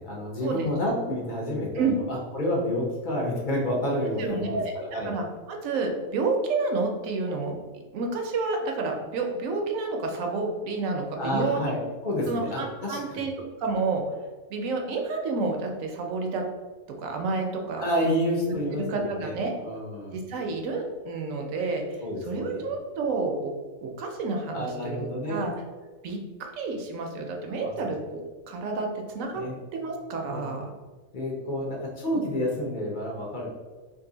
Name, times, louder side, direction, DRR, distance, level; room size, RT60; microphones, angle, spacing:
voice 1, 0.0-5.1 11.2-13.2 17.8-20.2 22.0-22.6 24.5-25.4 27.6-27.9 29.3-29.6 30.3-30.5 31.1-33.5, equal, 50° left, -3 dB, 0.6 m, -29 dB
voice 2, 4.2-4.7 5.0-7.5 7.9-11.7 12.3-14.0 14.5-16.4 17.0-18.1 18.7-19.5 20.1-23.5 23.8-25.5 26.0-28.2 28.5-29.4 29.7-30.7, right 3 dB, 70° right, 2 dB, 0.9 m, -30 dB
2.7 x 2.6 x 3.8 m, 1.3 s
omnidirectional pair, 1.6 m